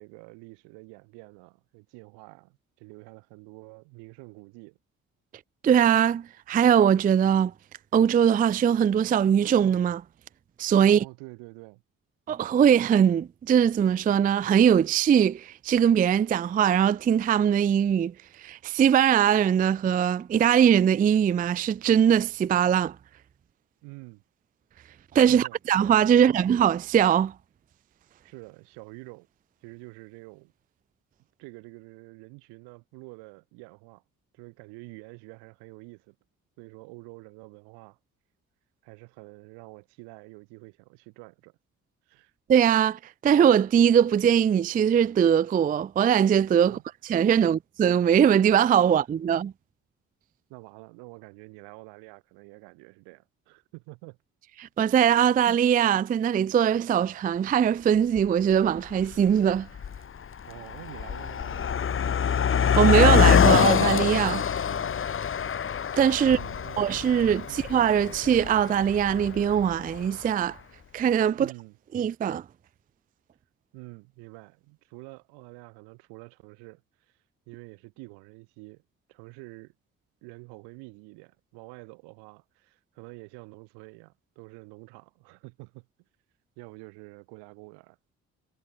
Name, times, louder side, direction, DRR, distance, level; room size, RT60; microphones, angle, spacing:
voice 1, 0.0-4.8 10.8-11.8 23.8-24.2 25.3-25.6 26.1-26.4 28.2-29.3 29.6-30.5 31.4-34.0 34.3-36.2 36.6-38.0 38.8-41.5 42.1-42.3 46.6-46.8 50.5-54.2 60.5-62.3 64.5-65.0 66.2-67.0 67.5-67.6 71.3-71.8 73.7-77.1 77.5-78.8 79.1-79.7 80.2-85.9 86.6-88.0, right 30 dB, 75° right, 3.2 m, -47 dB
voice 2, 5.6-7.5 7.9-10.0 10.6-11.0 12.3-18.1 18.4-22.9 25.1-27.3 42.5-46.8 47.1-49.5 54.6-59.7 62.6-64.4 66.0-66.4 66.8-70.6 70.9-71.5 71.9-72.4, right 8 dB, 20° right, 0.4 m, -21 dB
Car passing by, 58.2-58.3 59.0-59.3 59.6-70.0, left 7 dB, 30° left, 0.8 m, -24 dB
hypercardioid pair, 40°, 40 cm